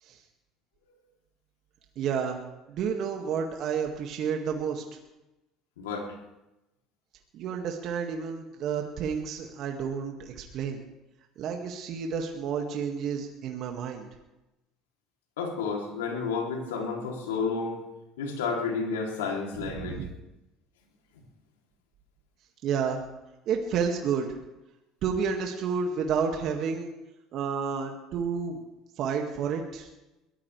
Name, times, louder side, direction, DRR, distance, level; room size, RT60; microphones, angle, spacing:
voice 1, 2.0-2.4 2.7-4.8 7.3-10.8 11.4-14.1 19.5-20.1 22.6-23.0 23.5-24.3 25.0-26.9 27.3-28.6 29.0-29.9, right 6 dB, 60° right, 2 dB, 2.0 m, -30 dB
voice 2, 15.4-17.8 18.2-20.0, left 5 dB, 85° left, 0 dB, 3.1 m, -31 dB
22.5 x 16.5 x 3.4 m, 0.97 s
hypercardioid pair, 70°, 0 cm